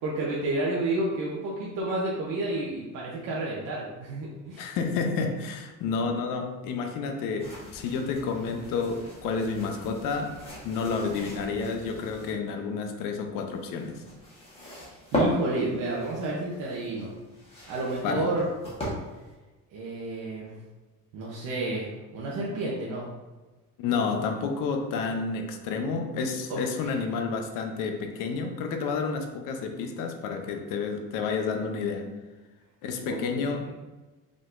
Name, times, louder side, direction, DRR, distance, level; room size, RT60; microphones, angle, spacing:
voice 1, 0.0-4.7 14.6-17.1 17.7-18.4 19.7-20.5 21.1-23.1 26.5-26.9 33.0-33.2, right 2 dB, 75° right, -5 dB, 0.9 m, -31 dB
voice 2, 4.6-10.4 10.6-14.0 18.0-18.3 23.8-32.1 32.8-33.7, left 5 dB, 90° left, 5 dB, 0.7 m, -30 dB
sound 1, 7.4-12.3 13.3-19.3, equal, 20° left, 1.3 m, -37 dB
5.1 x 3.8 x 2.6 m, 1.2 s
cardioid pair, 170°, 32 cm